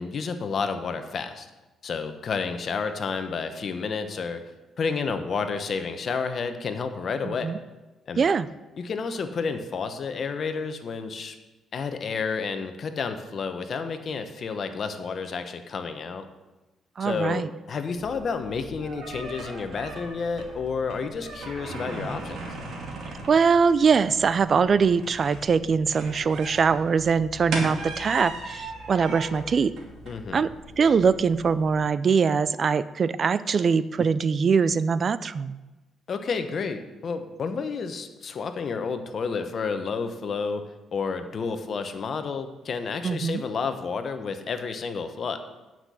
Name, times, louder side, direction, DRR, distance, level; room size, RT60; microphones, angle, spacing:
voice 1, 0.0-1.5 1.8-4.4 4.8-7.5 8.1-8.3 8.8-11.3 11.7-16.3 17.0-22.4 30.1-30.4 36.1-40.6 40.9-45.4, left 5 dB, 50° left, 8 dB, 1.1 m, -30 dB
voice 2, 7.2-7.6 8.2-8.5 17.0-17.5 23.3-29.7 30.3-30.5 30.8-35.6 43.0-43.4, right 5 dB, 45° right, 16 dB, 0.4 m, -22 dB
sound 1, 17.9-31.8, right 2 dB, 65° right, 2.5 m, -38 dB
9.0 x 6.0 x 8.4 m, 1.1 s
cardioid pair, 90°, 0 cm